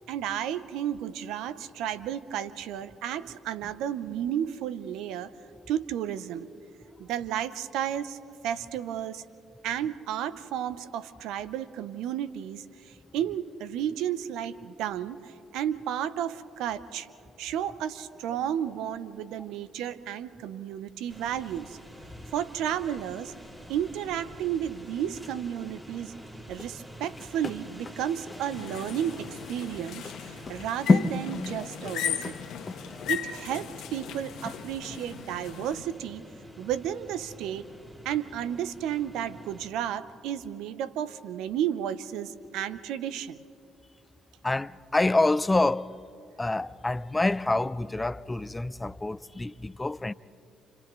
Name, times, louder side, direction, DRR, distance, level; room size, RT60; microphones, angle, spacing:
voice 1, 0.1-5.3 5.7-6.5 7.0-8.2 8.4-9.2 9.6-17.1 17.4-21.8 22.3-23.3 23.7-26.1 26.5-32.4 33.1-36.2 36.6-37.7 38.0-43.4, right 10 dB, 80° right, 0.6 m, -32 dB
sound 1, 21.1-39.7, equal, 20° right, 4.4 m, -48 dB
sound 2, 26.5-35.1 35.5-35.6, left 4 dB, 35° left, 1.1 m, -32 dB
sound 3, 28.5-35.8, left 9 dB, 75° left, 1.2 m, -37 dB
voice 2, 32.7-33.1 44.4-45.9 46.4-50.1, left 2 dB, 20° left, 0.5 m, -27 dB
29.5 x 29.5 x 3.1 m
supercardioid pair, 60°, 0 cm